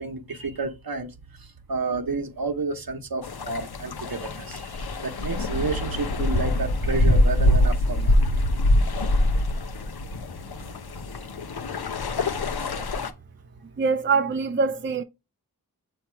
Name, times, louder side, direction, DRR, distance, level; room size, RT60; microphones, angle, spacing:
voice 1, 0.0-8.5, right 3 dB, 70° right, 1.0 m, -31 dB
sound 1, 3.2-13.1, left 1 dB, 85° left, 0.7 m, -24 dB
voice 2, 13.8-15.0, right 4 dB, 35° right, 0.4 m, -23 dB
7.2 x 2.9 x 4.5 m
wide cardioid pair, 60°, 37 cm